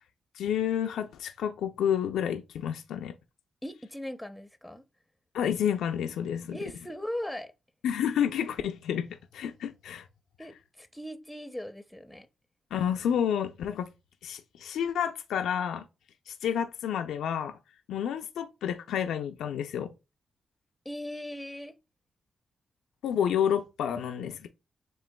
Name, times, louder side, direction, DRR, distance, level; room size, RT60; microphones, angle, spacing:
voice 1, 0.3-3.1 5.3-6.6 7.8-10.1 12.7-13.9 14.2-15.8 16.3-17.6 17.9-19.9 23.0-24.5, left 9 dB, 85° left, 0.4 m, -30 dB
voice 2, 3.6-4.8 6.5-7.5 10.4-12.3 20.8-21.7, left 1 dB, 5° left, 0.6 m, -39 dB
7.4 x 2.9 x 2.2 m
supercardioid pair, 55°, 0 cm